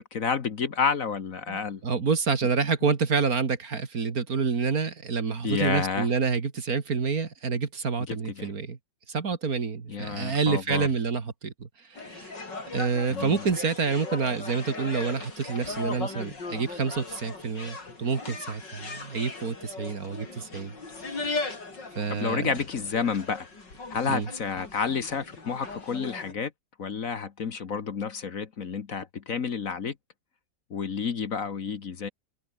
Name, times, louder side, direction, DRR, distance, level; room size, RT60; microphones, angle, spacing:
voice 1, 0.0-1.8 5.4-6.1 8.1-8.5 9.9-10.9 13.1-13.4 22.1-23.5 23.9-26.5 26.8-29.9 30.7-32.1, left 6 dB, 50° left, 1.6 m, -30 dB
voice 2, 1.5-8.8 9.1-12.3 12.7-20.7 21.9-22.5 24.1-24.3, right 5 dB, 55° right, 2.5 m, -28 dB
sound 1, 11.9-26.3, left 3 dB, 80° left, 5.2 m, -38 dB
open air
omnidirectional pair, 1.9 m